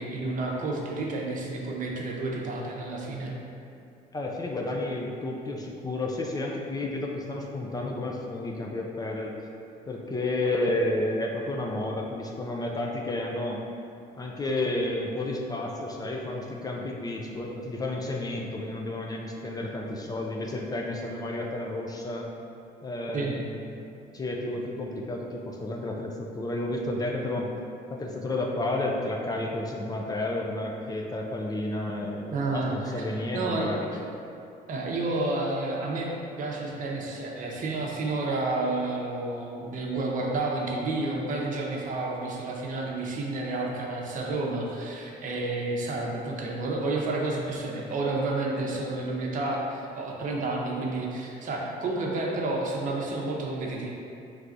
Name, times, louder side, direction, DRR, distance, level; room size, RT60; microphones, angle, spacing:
voice 1, 0.0-3.3 23.1-23.4 32.3-33.0 33.3-33.7 34.7-36.1 36.4-53.9, right 2 dB, 50° right, -1 dB, 0.7 m, -30 dB
voice 2, 4.1-9.3 9.9-13.6 14.2-22.3 22.8-23.8 24.1-27.5 27.9-34.0, left 2 dB, 20° left, 0 dB, 0.4 m, -31 dB
4.6 x 3.3 x 2.5 m, 2.6 s
cardioid pair, 110°, 17 cm